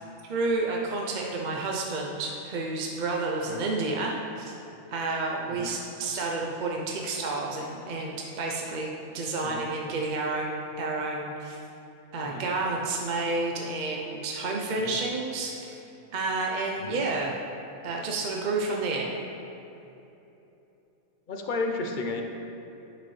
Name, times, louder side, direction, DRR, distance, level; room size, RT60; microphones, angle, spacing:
voice 1, 0.3-4.6 4.9-11.6 12.1-15.8 16.1-17.4 17.8-19.1, right 3 dB, 50° right, -1 dB, 0.6 m, -30 dB
voice 2, 21.3-22.2, left 3 dB, 50° left, 3 dB, 0.7 m, -33 dB
9.7 x 5.9 x 3.2 m, 2.9 s
omnidirectional pair, 1.3 m